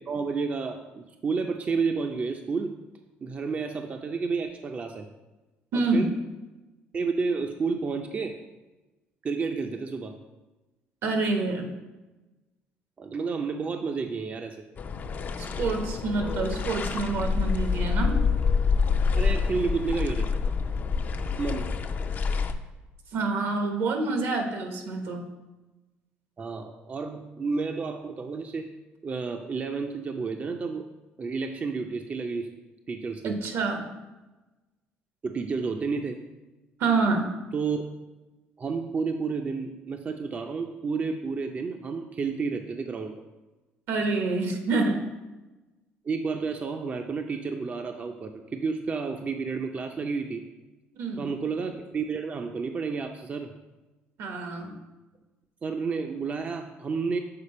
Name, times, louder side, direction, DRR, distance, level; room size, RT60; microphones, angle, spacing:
voice 1, 0.1-2.7 3.2-5.1 5.7-6.1 6.9-8.4 9.2-10.2 13.0-14.6 19.1-20.3 21.4-21.7 26.4-28.7 29.0-30.9 31.2-32.5 32.9-33.4 35.2-36.2 37.5-37.8 38.6-43.2 46.1-50.4 51.2-53.5 55.6-57.2, right 4 dB, 35° right, 5 dB, 0.4 m, -31 dB
voice 2, 5.7-6.1 11.0-11.7 15.4-18.1 23.1-25.3 33.2-33.9 36.8-37.3 43.9-45.0 50.9-51.3 54.2-54.7, right 3 dB, 75° right, 4 dB, 1.0 m, -27 dB
sound 1, 14.8-22.5, left 5 dB, 40° left, 0.4 m, -27 dB
6.8 x 4.2 x 4.2 m, 1.1 s
cardioid pair, 100°, 4 cm